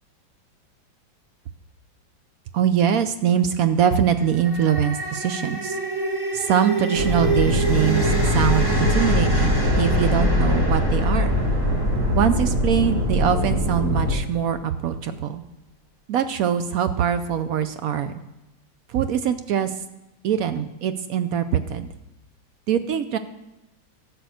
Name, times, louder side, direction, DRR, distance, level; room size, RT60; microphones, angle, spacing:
voice 1, 2.5-5.8 6.3-11.4 12.2-15.4 16.1-18.2 18.9-19.8 20.2-21.9 22.7-23.2, right 8 dB, 75° right, 10 dB, 0.8 m, -23 dB
sound 1, 4.0-13.3, right 1 dB, 10° right, 1.7 m, -27 dB
sound 2, 6.9-14.1, left 1 dB, 45° right, 2.1 m, -22 dB
12.5 x 6.9 x 6.3 m, 0.93 s
omnidirectional pair, 2.1 m